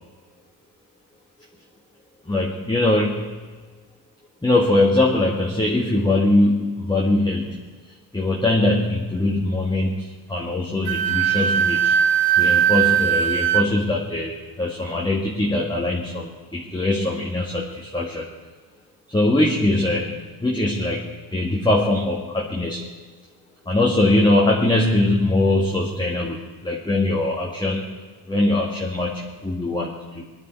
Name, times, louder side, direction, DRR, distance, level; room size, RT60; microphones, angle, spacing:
voice 1, 2.3-3.4 4.4-7.6 8.1-12.0 12.4-18.3 19.1-22.8 23.7-27.9 28.3-30.3, left 2 dB, 10° left, -3 dB, 2.1 m, -22 dB
Wind instrument woodwind instrument, 10.9-13.7, right 9 dB, 80° right, 1.0 m, -19 dB
20.0 x 11.0 x 4.7 m, 1.4 s
cardioid pair, 95°, 43 cm